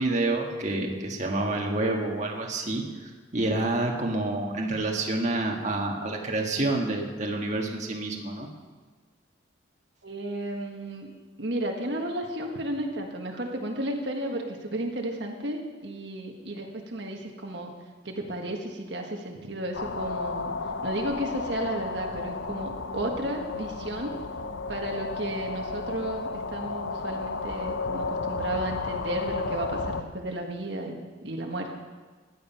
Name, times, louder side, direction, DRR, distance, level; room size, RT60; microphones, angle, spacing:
voice 1, 0.0-8.5, right 2 dB, 40° right, 0 dB, 1.7 m, -28 dB
voice 2, 10.0-11.1 11.4-17.7 18.0-20.5 20.8-24.2 24.7-31.7, right 1 dB, 60° right, 1 dB, 1.6 m, -33 dB
sound 1, 19.7-30.0, left 3 dB, 75° left, 0.8 m, -33 dB
16.5 x 11.5 x 5.7 m, 1.4 s
head